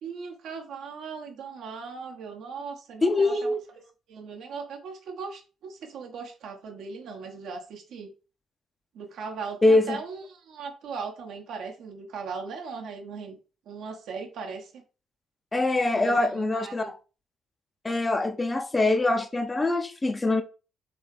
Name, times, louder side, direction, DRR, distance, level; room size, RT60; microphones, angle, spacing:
voice 1, 0.0-3.5 4.1-8.1 8.9-13.4 13.7-14.8 15.9-16.9, right 5 dB, 55° right, 0.9 m, -38 dB
voice 2, 3.0-3.6 9.6-10.0 15.5-17.0 17.8-20.4, left 2 dB, 20° left, 0.6 m, -23 dB
3.9 x 3.1 x 3.3 m
figure-of-eight pair, 45°, 0 cm